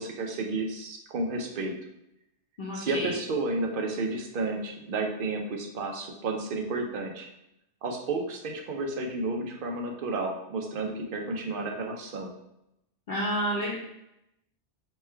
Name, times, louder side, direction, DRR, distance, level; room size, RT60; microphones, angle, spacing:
voice 1, 0.0-1.8 2.7-7.3 7.8-12.3, right 3 dB, 60° right, 2 dB, 0.7 m, -31 dB
voice 2, 2.6-3.1 13.1-13.8, equal, 55° left, -4 dB, 0.7 m, -30 dB
3.2 x 2.2 x 4.3 m, 0.84 s
omnidirectional pair, 1.1 m